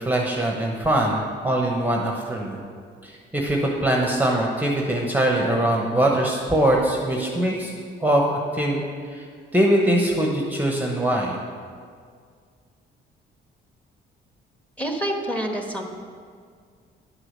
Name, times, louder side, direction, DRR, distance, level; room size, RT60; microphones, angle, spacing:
voice 1, 0.0-2.6 3.0-7.7 8.0-8.8 9.1-9.2 9.5-11.4, right 1 dB, 10° right, 0 dB, 1.0 m, -22 dB
voice 2, 14.8-15.8, equal, 5° left, 2 dB, 1.2 m, -27 dB
10.0 x 4.9 x 6.3 m, 2.1 s
cardioid pair, 90°, 20 cm